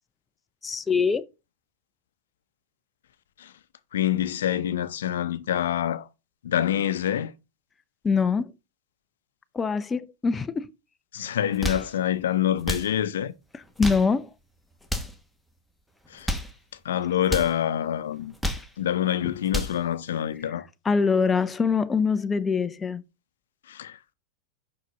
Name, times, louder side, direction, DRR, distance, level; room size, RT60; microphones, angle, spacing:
voice 1, 0.6-1.2 8.0-8.5 9.5-10.6 13.8-14.3 20.8-23.0, left 5 dB, 15° left, 0.6 m, -23 dB
voice 2, 3.9-6.1 6.4-7.3 11.1-13.3 16.1-16.3 16.8-18.3 18.8-20.7 23.7-24.1, left 10 dB, 80° left, 0.7 m, -26 dB
sound 1, 11.4-11.9 12.6-12.9 13.6-14.1 14.8-15.2 16.0-16.5 17.2-17.5 18.2-18.7 19.3-19.8, equal, ahead, 1.3 m, -30 dB
6.5 x 5.8 x 5.2 m
hypercardioid pair, 115°, 0 cm